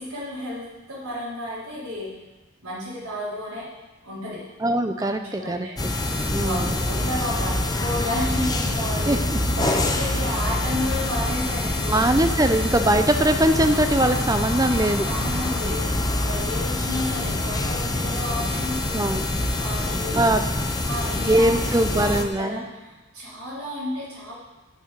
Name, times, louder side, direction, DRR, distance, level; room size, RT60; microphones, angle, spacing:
voice 1, 0.0-2.1 2.6-3.7 4.0-4.4 5.0-5.7 6.4-12.0 15.0-19.0 19.6-20.2 20.9-22.1 22.4-24.3, left 1 dB, 80° right, -11 dB, 4.0 m, -32 dB
voice 2, 4.6-5.9 6.3-6.8 9.1-9.4 11.9-15.1 15.6-15.8 18.9-19.2 20.1-20.5 21.1-22.6, right 1 dB, 15° right, 7 dB, 0.6 m, -22 dB
sound 1, 5.8-22.2, left 1 dB, 20° left, 0.7 m, -25 dB
9.3 x 6.6 x 7.5 m, 1.1 s
head